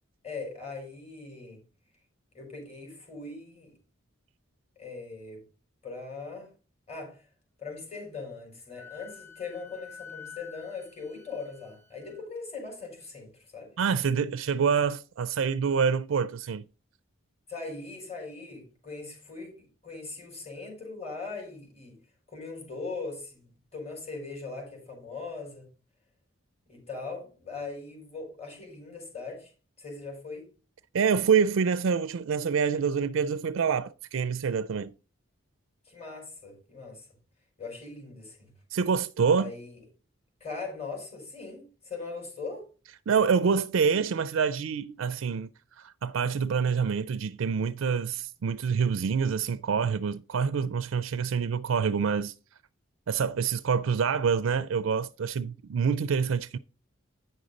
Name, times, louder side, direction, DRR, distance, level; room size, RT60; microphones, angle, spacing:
voice 1, 0.2-1.6 2.3-3.7 4.8-5.4 5.8-6.5 6.9-7.2 7.6-13.7 17.5-22.0 22.3-25.7 26.7-29.5 29.8-30.5 35.8-37.1 37.6-38.5 39.2-39.8 40.4-42.7, left 4 dB, 30° left, 4.5 m, -40 dB
Wind instrument woodwind instrument, 8.7-12.2, left 7 dB, 10° left, 1.1 m, -48 dB
voice 2, 13.8-16.6 30.9-34.9 38.7-39.5 43.1-45.5 45.8-52.3 53.1-56.6, right 6 dB, 70° right, 0.4 m, -26 dB
9.2 x 6.4 x 4.0 m
head